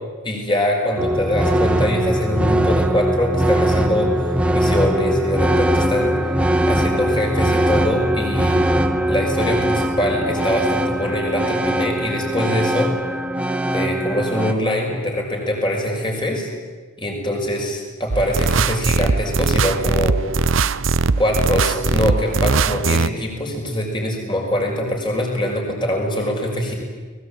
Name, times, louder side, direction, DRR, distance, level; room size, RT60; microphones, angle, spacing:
voice 1, 0.2-6.4 6.7-8.7 9.1-12.9 13.7-16.5 17.0-20.2 20.9-26.8, left 1 dB, 25° left, 1 dB, 5.8 m, -23 dB
sound 1, 1.0-14.5, right 1 dB, 5° right, 1.4 m, -21 dB
sound 2, 18.1-23.1, right 4 dB, 65° right, 0.8 m, -20 dB
30.0 x 21.0 x 8.8 m, 1.4 s
head